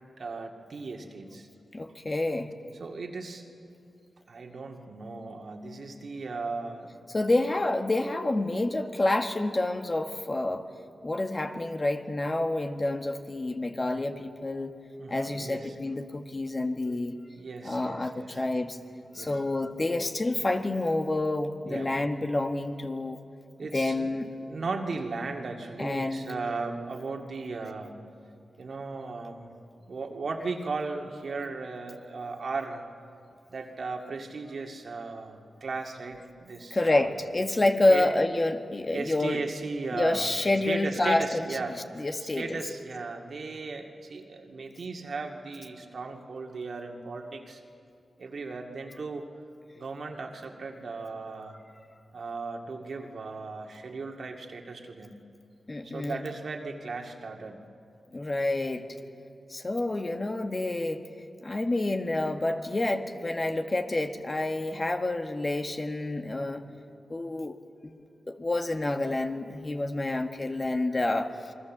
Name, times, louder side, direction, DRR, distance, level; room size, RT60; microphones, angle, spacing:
voice 1, 0.2-1.5 2.8-3.4 4.3-7.0 15.0-15.7 17.4-18.4 19.1-19.4 21.6-21.9 23.6-24.1 24.4-28.0 28.6-29.5 29.9-32.8 33.5-37.1 37.9-38.1 38.9-40.3 40.7-47.6 48.2-49.3 49.7-51.6 52.1-55.2 55.8-57.6, right 3 dB, 65° right, 2 dB, 2.2 m, -36 dB
voice 2, 1.7-2.5 7.1-10.7 11.0-14.7 15.1-17.2 17.6-18.8 19.1-23.2 23.7-24.3 25.8-26.3 36.7-39.5 39.9-41.5 41.9-42.6 55.7-56.3 58.1-58.8 59.5-61.0 61.4-66.6 67.1-67.6 67.8-68.0 68.3-71.5, left 2 dB, 35° left, 6 dB, 1.6 m, -28 dB
28.0 x 21.5 x 7.4 m, 2.5 s
cardioid pair, 65°, 0 cm